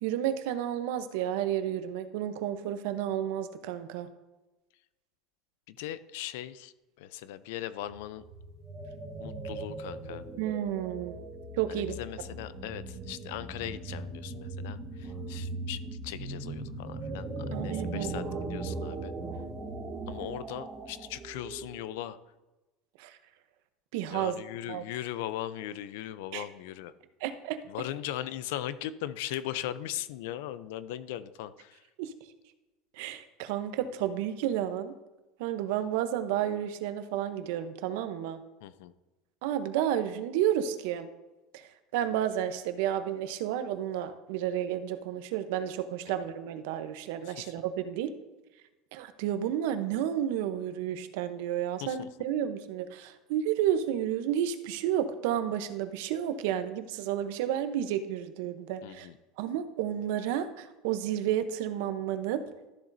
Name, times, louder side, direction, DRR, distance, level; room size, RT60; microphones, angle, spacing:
voice 1, 0.0-4.1 10.4-11.2 11.6-12.0 17.5-18.2 23.0-23.2 23.9-24.3 24.7-24.8 26.3-26.4 27.2-27.6 32.0-32.1 32.9-34.9 35.4-38.4 39.4-41.1 41.5-48.1 48.9-59.1 59.4-62.4, right 10 dB, 75° right, 10 dB, 0.7 m, -31 dB
voice 2, 5.7-8.2 9.2-10.3 11.7-17.3 17.6-19.1 20.1-22.2 24.1-26.9 27.7-31.8 38.6-38.9 46.1-46.2 47.3-47.5 51.8-52.1 58.8-59.2, left 12 dB, 80° left, 15 dB, 0.5 m, -39 dB
sound 1, 7.8-22.0, right 2 dB, 25° right, 1.2 m, -39 dB
13.0 x 7.2 x 2.6 m, 1.1 s
cardioid pair, 150°, 0 cm